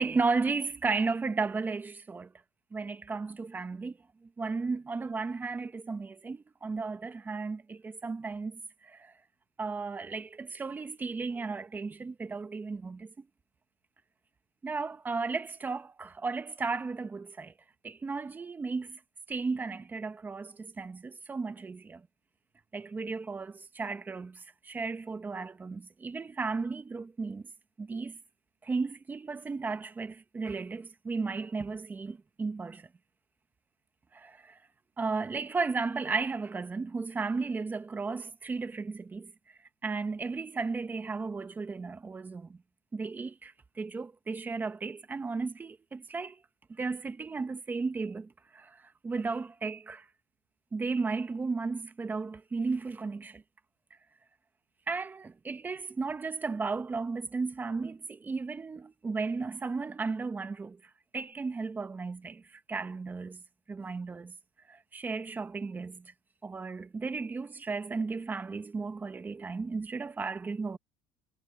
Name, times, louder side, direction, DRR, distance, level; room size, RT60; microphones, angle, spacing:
voice 1, 0.0-2.3 2.7-9.1 9.6-13.1 14.6-17.5 17.8-19.0 19.3-22.1 22.7-27.5 27.8-28.2 28.6-32.9 34.1-34.6 35.0-42.6 42.9-46.4 46.7-50.1 50.7-53.4 54.9-60.8 61.1-63.4 63.7-64.3 64.7-66.1 66.4-70.8, right 4 dB, 20° right, 1.3 m, -34 dB
cardioid pair, 145°, 10 cm